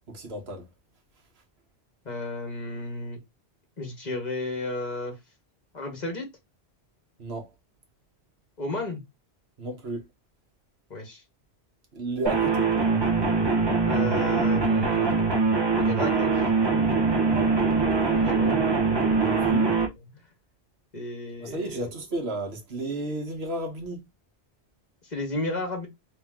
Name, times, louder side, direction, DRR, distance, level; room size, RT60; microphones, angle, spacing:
voice 1, 0.1-0.7 7.2-7.5 9.6-10.1 11.9-12.7 17.2-17.6 19.2-19.7 21.4-24.1, right 2 dB, 75° right, 1.4 m, -33 dB
voice 2, 2.0-3.2 3.8-5.1 5.7-6.3 8.6-9.0 10.9-11.2 13.8-15.1 15.8-16.5 18.1-18.8 20.9-21.8 25.0-25.9, left 2 dB, 40° left, 1.5 m, -33 dB
sound 1, 12.3-19.9, right 4 dB, 25° right, 1.0 m, -23 dB
3.4 x 3.0 x 3.6 m
omnidirectional pair, 1.1 m